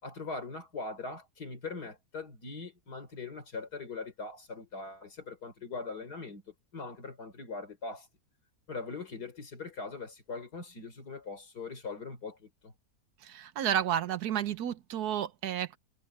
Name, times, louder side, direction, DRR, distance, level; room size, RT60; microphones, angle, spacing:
voice 1, 0.0-8.1 8.7-12.7, left 3 dB, 80° left, 4.2 m, -41 dB
voice 2, 13.2-15.8, right 10 dB, 75° right, 1.4 m, -31 dB
omnidirectional pair, 1.7 m